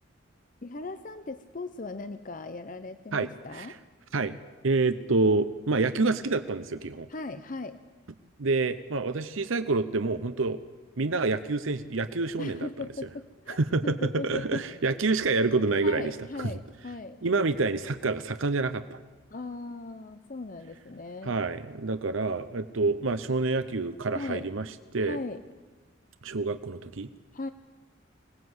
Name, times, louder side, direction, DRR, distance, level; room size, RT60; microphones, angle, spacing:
voice 1, 0.6-3.8 7.1-7.8 12.4-14.7 15.8-17.2 19.3-21.3 24.1-24.5 25.0-25.4 27.3-27.5, left 3 dB, 40° left, 10 dB, 0.7 m, -38 dB
voice 2, 3.1-3.7 4.1-4.4 4.6-7.1 8.4-10.6 11.0-12.7 13.5-16.5 17.2-19.0 21.2-25.2 26.2-27.1, right 3 dB, 75° right, 11 dB, 0.8 m, -27 dB
25.5 x 18.5 x 8.0 m, 1.3 s
head